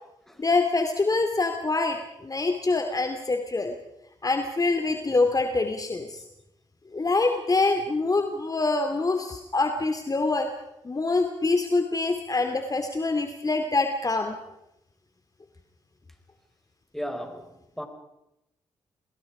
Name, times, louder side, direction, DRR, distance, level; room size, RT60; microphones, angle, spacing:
voice 1, 0.4-3.7 4.2-6.2 6.9-10.5 10.8-14.4, left 3 dB, 30° left, 6 dB, 2.4 m, -25 dB
voice 2, 16.9-17.8, equal, 5° left, 6 dB, 5.0 m, -36 dB
29.0 x 20.5 x 5.0 m, 0.87 s
hypercardioid pair, 45°, 12 cm